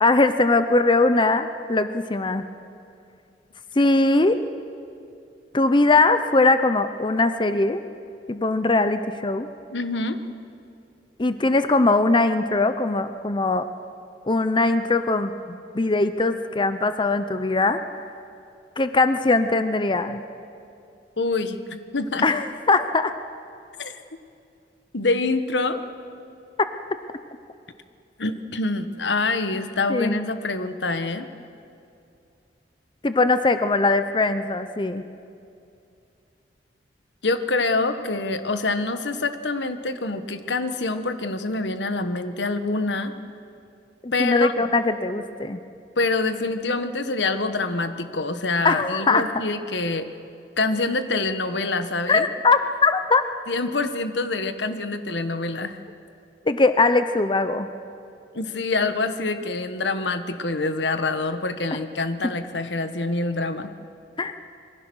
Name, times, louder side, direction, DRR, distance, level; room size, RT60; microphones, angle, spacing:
voice 1, 0.0-2.4 3.8-4.4 5.5-7.8 8.3-9.5 11.2-13.7 14.2-17.8 18.8-20.2 22.2-23.1 29.9-30.2 33.0-35.0 44.0-45.6 48.6-49.2 52.1-53.2 56.5-57.7 64.2-64.4, left 3 dB, 25° left, 10 dB, 0.7 m, -21 dB
voice 2, 9.7-10.2 21.2-22.3 23.8-24.0 24.9-25.8 28.2-31.3 37.2-43.1 44.1-44.7 46.0-50.1 50.6-52.3 53.5-55.8 58.3-63.7, left 3 dB, 80° left, 9 dB, 1.3 m, -26 dB
26.5 x 23.0 x 6.3 m, 2.5 s
head